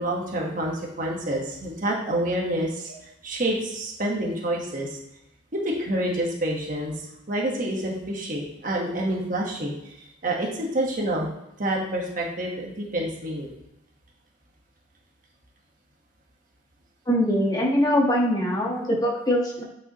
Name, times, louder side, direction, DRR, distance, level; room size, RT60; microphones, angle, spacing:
voice 1, 0.0-5.0 5.5-11.3 11.6-13.5, right 1 dB, 45° right, -1 dB, 1.4 m, -28 dB
voice 2, 17.1-19.6, equal, 20° left, -2 dB, 1.4 m, -22 dB
8.6 x 5.3 x 3.1 m, 0.84 s
head